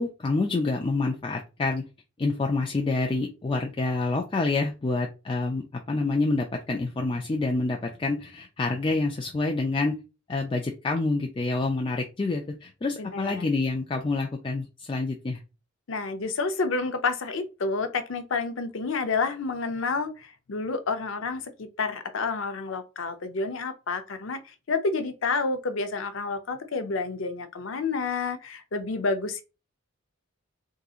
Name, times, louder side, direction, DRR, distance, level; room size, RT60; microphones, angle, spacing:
voice 1, 0.0-1.8 2.2-10.0 10.3-15.4, left 3 dB, 25° left, 0.3 m, -27 dB
voice 2, 13.0-13.5 15.9-29.4, left 4 dB, 70° left, 0.6 m, -29 dB
3.7 x 2.8 x 2.4 m
head